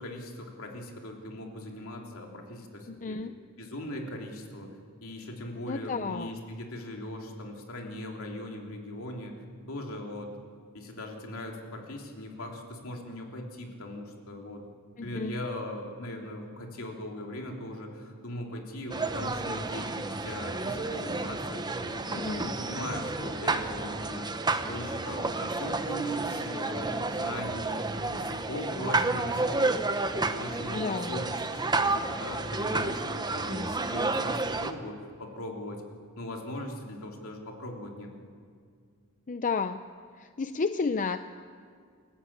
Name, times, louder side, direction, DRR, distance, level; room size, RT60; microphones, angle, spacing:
voice 1, 0.0-3.2 3.6-4.7 5.0-9.4 9.7-10.4 10.7-14.7 15.0-24.3 24.6-27.9 28.1-29.8 30.1-35.8 36.2-38.1, left 1 dB, 70° left, 1 dB, 3.2 m, -39 dB
voice 2, 2.9-3.3 5.7-6.3 15.0-15.3 22.0-22.5 30.7-31.2 39.3-39.8 40.2-41.4, left 4 dB, 35° left, 10 dB, 0.6 m, -32 dB
sound 1, 18.9-34.7, right 3 dB, 20° right, 1.0 m, -31 dB
28.0 x 15.0 x 8.6 m, 2.1 s
head